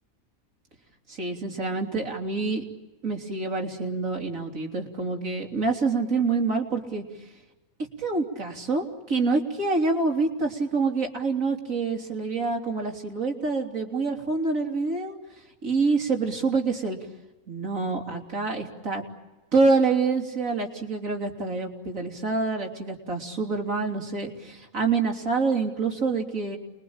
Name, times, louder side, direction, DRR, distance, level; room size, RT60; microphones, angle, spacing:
voice 1, 1.1-2.6 3.0-7.0 8.0-15.2 15.6-17.0 17.5-19.0 19.5-26.6, right 4 dB, 70° right, 1 dB, 3.7 m, -26 dB
29.0 x 22.5 x 8.8 m, 1.1 s
omnidirectional pair, 1.4 m